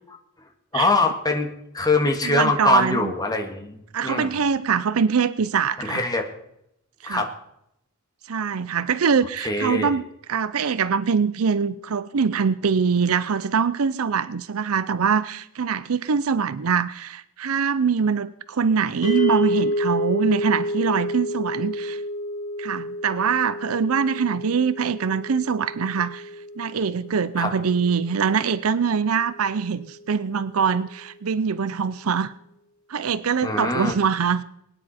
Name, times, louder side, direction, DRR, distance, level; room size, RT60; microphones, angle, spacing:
voice 1, 0.7-1.5 1.7-4.4 5.8-6.3 7.0-7.3 9.4-9.9 27.4-27.5 33.4-33.9, left 3 dB, 20° left, 4 dB, 1.8 m, -23 dB
voice 2, 2.2-3.1 3.9-6.0 7.0-7.3 8.3-10.0 10.3-22.0 22.6-26.3 26.6-32.3 32.9-34.4, right 6 dB, 80° right, 16 dB, 0.6 m, -23 dB
sound 1, 19.0-29.3, equal, 90° left, 4.2 m, -30 dB
23.0 x 9.7 x 4.3 m, 0.77 s
head